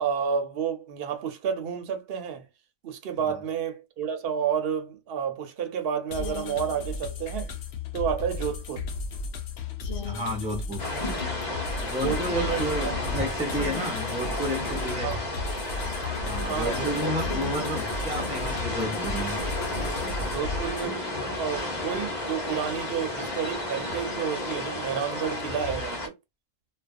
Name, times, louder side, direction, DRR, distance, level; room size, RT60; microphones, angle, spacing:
voice 1, 0.0-2.5 2.8-7.5 7.9-8.9 12.0-13.0 15.0-15.2 16.5-17.1 20.3-26.1, right 8 dB, 60° right, 0.8 m, -30 dB
sound 1, 6.1-20.9, left 4 dB, 70° left, 0.8 m, -35 dB
voice 2, 10.0-10.9 11.8-15.1 16.2-19.4 20.0-20.4, equal, 5° right, 0.6 m, -32 dB
sound 2, 10.8-26.1, left 1 dB, 40° left, 0.9 m, -32 dB
2.4 x 2.2 x 2.4 m
omnidirectional pair, 1.2 m